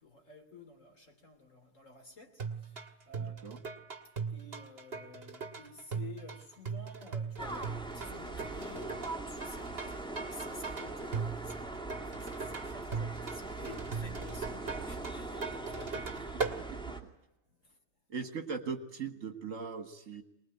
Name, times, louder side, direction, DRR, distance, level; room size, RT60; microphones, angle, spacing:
voice 1, 0.0-3.8 4.3-16.4 17.5-17.8, left 3 dB, 55° left, 3.4 m, -52 dB
sound 1, 2.4-16.6, right 5 dB, 40° right, 1.8 m, -39 dB
voice 2, 3.2-3.6 18.1-20.2, right 5 dB, 60° right, 1.9 m, -39 dB
sound 2, 7.4-17.0, right 2 dB, 5° left, 2.3 m, -41 dB
24.0 x 20.5 x 9.4 m
omnidirectional pair, 1.6 m